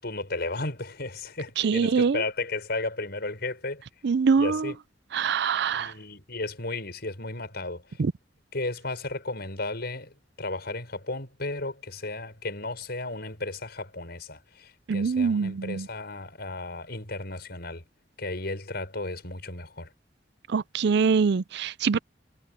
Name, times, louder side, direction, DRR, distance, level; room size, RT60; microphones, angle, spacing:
voice 1, 0.0-3.8 4.4-4.8 5.7-8.0 8.5-17.8 18.2-19.9, left 2 dB, 60° left, 6.5 m, -34 dB
voice 2, 1.6-2.2 4.0-4.7 5.1-5.9 8.0-8.1 14.9-15.9 20.5-22.0, right 5 dB, 65° right, 0.4 m, -24 dB
head